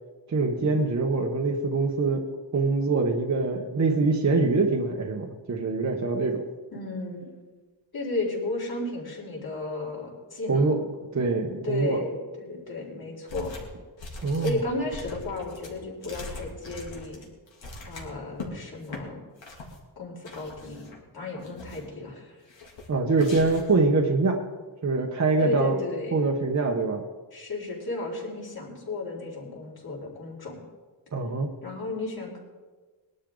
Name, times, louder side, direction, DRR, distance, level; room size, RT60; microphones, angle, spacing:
voice 1, 0.3-2.2 2.5-6.5 10.5-10.8 11.1-12.0 14.2-14.6 22.9-24.4 24.8-25.7 26.1-27.1 31.1-31.5, right 3 dB, 40° right, 1 dB, 1.1 m, -24 dB
voice 2, 6.7-7.3 7.9-10.8 11.5-13.5 14.3-17.2 17.9-19.2 20.0-20.8 21.1-22.4 25.4-26.2 27.3-30.6 31.6-32.4, left 2 dB, 55° left, -2 dB, 4.4 m, -34 dB
sound 1, 13.3-13.7 14.0-18.5 18.8-19.0 19.4-19.8 20.2-21.0 21.4-22.0 22.5-22.9 23.2-23.8, left 2 dB, 90° left, 3.1 m, -41 dB
21.0 x 12.0 x 3.9 m, 1.3 s
wide cardioid pair, 145°, 44 cm